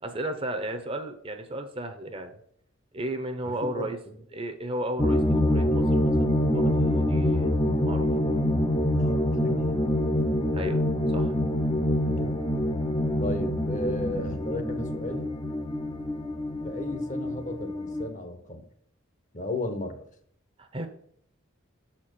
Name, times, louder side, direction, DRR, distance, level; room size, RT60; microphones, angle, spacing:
voice 1, 0.0-2.3 2.9-4.0 4.3-7.5 7.8-8.1 10.5-10.8 11.1-11.3 20.6-20.9, right 1 dB, 25° right, 6 dB, 0.8 m, -34 dB
voice 2, 3.4-4.1 9.0-10.0 12.1-12.4 13.2-15.3 16.6-18.7 19.3-20.0, left 2 dB, 35° left, 7 dB, 0.9 m, -35 dB
sound 1, 5.0-18.1, left 1 dB, 20° left, 0.6 m, -26 dB
6.7 x 4.4 x 6.7 m, 0.67 s
head